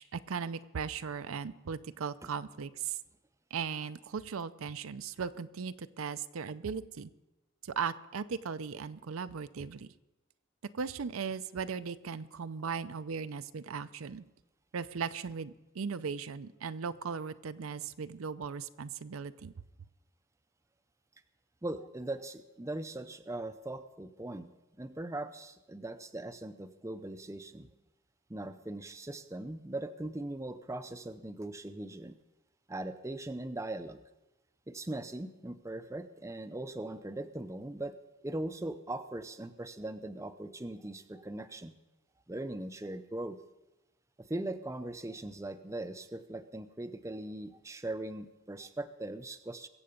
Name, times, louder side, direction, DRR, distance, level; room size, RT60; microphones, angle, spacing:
voice 1, 0.0-3.0 3.5-7.1 7.6-9.9 10.7-14.2 14.7-19.5, right 6 dB, 80° right, 12 dB, 0.5 m, -38 dB
voice 2, 21.6-24.5 24.8-27.7 28.3-32.2 32.7-34.0 34.7-37.9 38.2-41.7 42.3-43.4 44.2-49.7, right 1 dB, 15° right, 9 dB, 0.5 m, -40 dB
22.5 x 7.7 x 5.1 m, 1.0 s
head